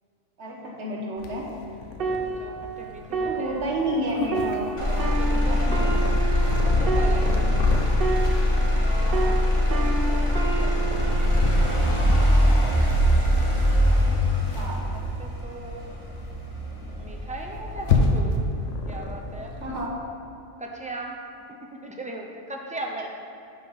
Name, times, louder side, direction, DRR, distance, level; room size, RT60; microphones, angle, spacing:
voice 1, 0.4-1.5 3.2-6.2 7.4-7.7 9.1-9.4 14.5-14.9 19.4-20.1, right 1 dB, 70° right, -2 dB, 1.4 m, -31 dB
Purr, 1.2-19.9, left 4 dB, 85° left, 1.1 m, -32 dB
sound 1, 2.0-8.9 9.1-12.7 13.3-13.6, right 4 dB, 55° right, 0.8 m, -31 dB
voice 2, 2.4-3.6 5.0-5.8 6.6-7.4 8.8-12.6 14.4-15.9 17.0-18.5 18.9-19.6 20.6-21.2 21.5-23.1, right 1 dB, 10° right, 0 dB, 0.4 m, -39 dB
Motor vehicle (road), 4.8-18.8 19.2-19.8, equal, 25° left, 1.1 m, -22 dB
5.9 x 5.6 x 5.4 m, 2.6 s
omnidirectional pair, 1.2 m